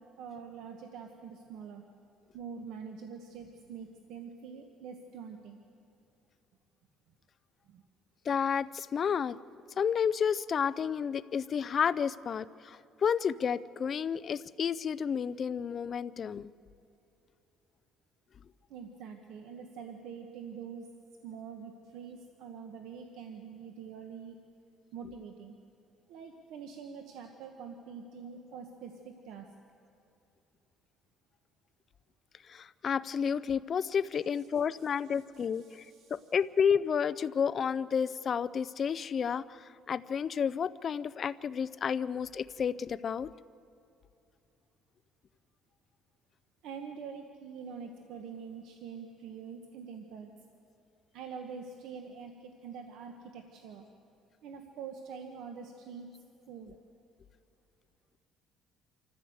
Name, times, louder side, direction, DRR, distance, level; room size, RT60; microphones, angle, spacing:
voice 1, 0.0-1.8 2.3-5.6 7.7-7.8 18.7-20.9 21.2-24.4 24.9-25.6 26.1-29.5 35.3-36.2 46.6-50.3 51.1-53.9 54.4-56.1 56.5-56.8, right 6 dB, 70° right, 4 dB, 1.3 m, -45 dB
voice 2, 8.3-9.4 9.8-16.5 32.5-43.3, left 7 dB, 35° left, 15 dB, 0.4 m, -31 dB
26.0 x 14.5 x 7.9 m, 2.8 s
cardioid pair, 160°, 0 cm